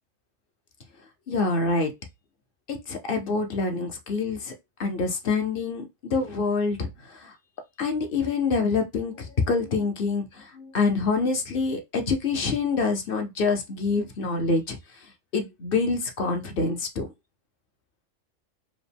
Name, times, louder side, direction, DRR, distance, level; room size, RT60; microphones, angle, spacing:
voice 1, 1.3-1.9 2.7-4.5 4.8-6.9 7.8-14.8 15.3-17.1, left 4 dB, 50° left, 0.8 m, -26 dB
4.9 x 2.2 x 3.4 m
omnidirectional pair, 1.3 m